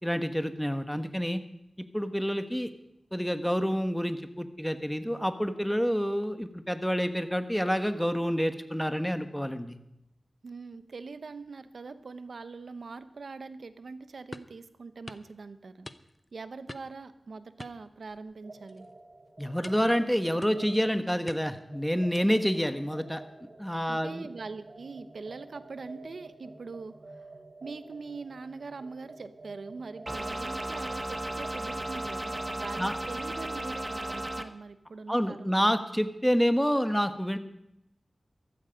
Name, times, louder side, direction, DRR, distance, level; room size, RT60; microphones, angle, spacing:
voice 1, 0.0-1.4 1.8-2.7 3.1-9.8 19.4-24.3 32.8-33.0 35.1-37.4, equal, 5° left, 9 dB, 1.2 m, -28 dB
voice 2, 10.4-15.9 16.3-18.9 23.9-27.3 27.6-35.7, right 4 dB, 80° right, 12 dB, 0.8 m, -43 dB
sound 1, 14.3-14.6 15.1-15.3 15.8-16.3 16.7-17.0 17.6-18.4 18.7-18.9 19.6-20.0 20.4-20.8 21.3-21.7 22.1-22.5, left 2 dB, 35° left, 0.8 m, -46 dB
sound 2, 18.4-34.3, right 2 dB, 60° right, 2.0 m, -50 dB
sound 3, 30.1-34.4, right 1 dB, 30° right, 1.0 m, -35 dB
15.0 x 13.5 x 5.2 m, 0.81 s
wide cardioid pair, 55°, 0 cm